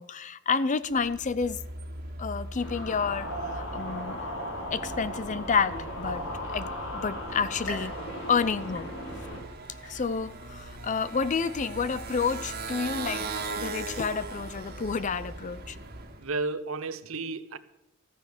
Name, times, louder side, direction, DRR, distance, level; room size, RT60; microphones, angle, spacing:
voice 1, 0.0-1.6 2.2-4.2 4.7-6.2 6.5-8.0 8.3-8.9 9.2-9.3 9.9-15.8, left 5 dB, 35° left, 0.5 m, -30 dB
Motorcycle, 0.9-16.3, right 3 dB, 45° right, 1.8 m, -40 dB
sound 1, 2.5-9.4, equal, 65° left, 4.4 m, -36 dB
sound 2, 7.7-9.4 9.8-10.4 10.9-11.0 12.0-12.1, left 2 dB, 90° left, 5.7 m, -44 dB
voice 2, 16.2-17.6, right 3 dB, 75° right, 0.9 m, -32 dB
14.0 x 9.4 x 7.2 m
head